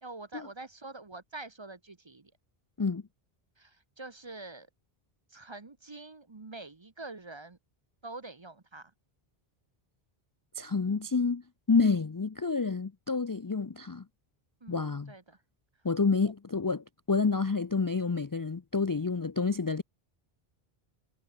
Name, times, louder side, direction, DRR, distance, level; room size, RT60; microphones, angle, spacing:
voice 1, 0.0-2.3 3.6-4.7 5.3-7.6 8.0-8.9 14.6-15.4, right 2 dB, 30° right, 0.9 m, -45 dB
voice 2, 10.6-14.0 14.7-15.1 15.8-19.8, left 4 dB, 30° left, 0.4 m, -29 dB
omnidirectional pair, 1.0 m